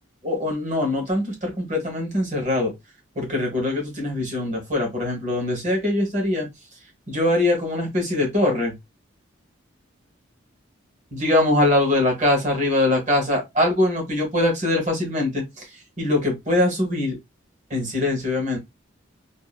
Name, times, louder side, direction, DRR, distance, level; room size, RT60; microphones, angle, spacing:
voice 1, 0.2-2.7 3.2-6.5 7.1-8.7 11.1-15.7 16.0-17.2 17.7-18.6, left 1 dB, 40° right, 1.1 m, -22 dB
2.7 x 2.4 x 2.3 m
head